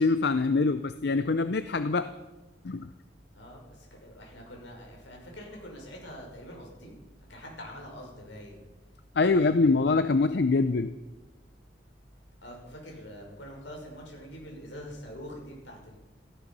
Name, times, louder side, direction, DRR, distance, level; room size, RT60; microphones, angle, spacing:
voice 1, 0.0-2.1 2.6-2.9 9.2-10.9, left 3 dB, 60° left, 11 dB, 0.6 m, -24 dB
voice 2, 3.3-7.0 7.3-8.6 9.2-9.8 12.4-16.0, equal, 80° left, 0 dB, 6.1 m, -45 dB
17.5 x 14.5 x 5.5 m, 1.1 s
head